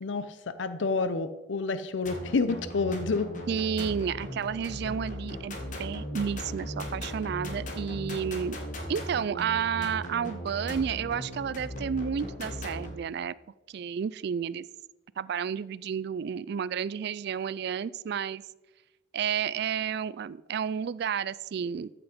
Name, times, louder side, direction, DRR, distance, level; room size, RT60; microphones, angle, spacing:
voice 1, 0.0-3.3, left 4 dB, 80° left, 12 dB, 0.6 m, -29 dB
sound 1, 2.0-12.9, equal, 45° left, 2.0 m, -37 dB
voice 2, 3.5-8.6 8.9-13.3 13.7-14.6 15.2-18.4 19.1-21.9, right 7 dB, 60° right, 18 dB, 0.3 m, -31 dB
14.0 x 5.9 x 5.1 m, 1.1 s
head